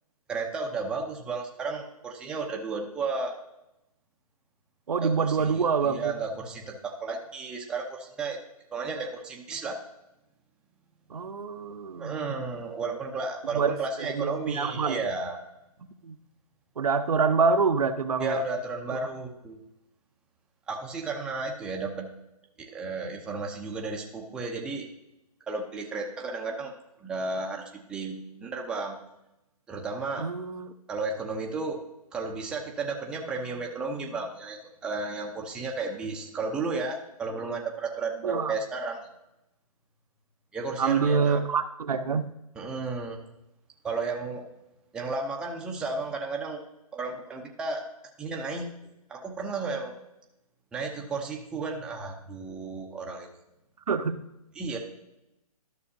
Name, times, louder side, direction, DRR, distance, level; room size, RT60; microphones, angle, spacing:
voice 1, 0.3-3.3 5.0-8.4 8.7-9.8 12.0-15.4 18.2-19.6 20.7-22.1 22.6-24.9 25.5-26.7 27.0-29.0 29.7-30.3 30.9-31.8 32.1-39.0 40.5-41.4 42.6-43.2 43.8-44.5 44.9-46.6 46.9-47.8 48.2-49.9 50.7-53.4 54.6-54.8, right 3 dB, 5° right, 0 dB, 0.6 m, -33 dB
voice 2, 4.9-6.1 11.1-12.2 13.5-13.7 14.0-15.0 16.0-16.2 16.8-18.4 30.2-30.7 38.2-38.5 40.8-42.3 53.9-54.2, right 5 dB, 75° right, 8 dB, 0.8 m, -26 dB
12.5 x 6.2 x 2.7 m, 0.90 s
hypercardioid pair, 145°, 19 cm